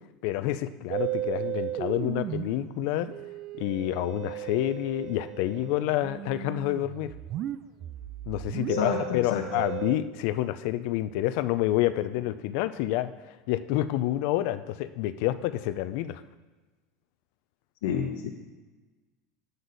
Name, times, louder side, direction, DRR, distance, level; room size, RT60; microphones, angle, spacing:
voice 1, 0.2-3.1 3.6-7.1 8.3-13.1 13.5-16.2, left 14 dB, 60° left, 13 dB, 0.5 m, -28 dB
Musical instrument, 0.9-10.0, right 13 dB, 40° right, 0.3 m, -35 dB
voice 2, 8.7-9.7 17.8-18.3, left 8 dB, 85° left, 2 dB, 0.9 m, -30 dB
9.5 x 7.9 x 4.0 m, 1.2 s
supercardioid pair, 145°, 0 cm